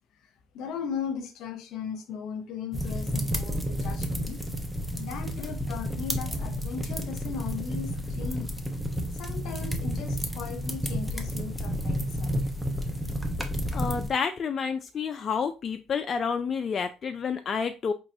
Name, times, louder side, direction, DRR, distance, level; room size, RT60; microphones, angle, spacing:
voice 1, 0.5-4.4 5.0-8.6 9.1-12.5, left 6 dB, 70° left, 0.7 m, -37 dB
sound 1, 2.7-14.1, equal, 5° right, 0.7 m, -31 dB
voice 2, 13.7-17.9, left 6 dB, 45° left, 0.3 m, -29 dB
4.0 x 3.1 x 2.6 m
supercardioid pair, 85°, 0 cm